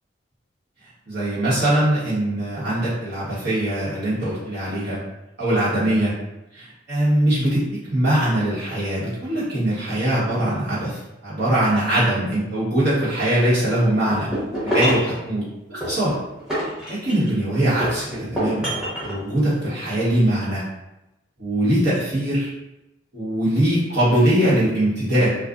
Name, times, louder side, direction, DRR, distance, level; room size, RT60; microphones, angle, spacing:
voice 1, 1.1-5.0 5.4-6.1 6.5-14.3 14.6-15.4 15.7-16.1 16.9-20.6 21.4-22.5 23.1-25.3, right 1 dB, 60° right, -10 dB, 1.2 m, -21 dB
sound 1, 14.1-15.1 15.8-17.4 17.8-19.2, equal, 5° right, 0.8 m, -26 dB
2.4 x 2.3 x 2.4 m, 0.95 s
head